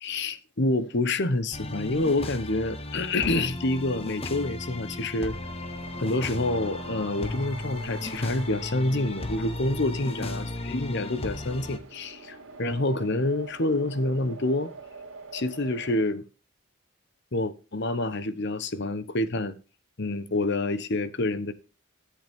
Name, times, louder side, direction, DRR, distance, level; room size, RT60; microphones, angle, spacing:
voice 1, 0.0-5.4 6.0-14.7 15.3-16.2 17.3-19.5 20.0-21.5, left 2 dB, 50° left, 1.0 m, -27 dB
sound 1, 1.5-11.8, left 2 dB, 25° left, 1.0 m, -35 dB
sound 2, 5.3-16.1, right 4 dB, 65° right, 2.6 m, -45 dB
14.0 x 8.1 x 3.6 m
head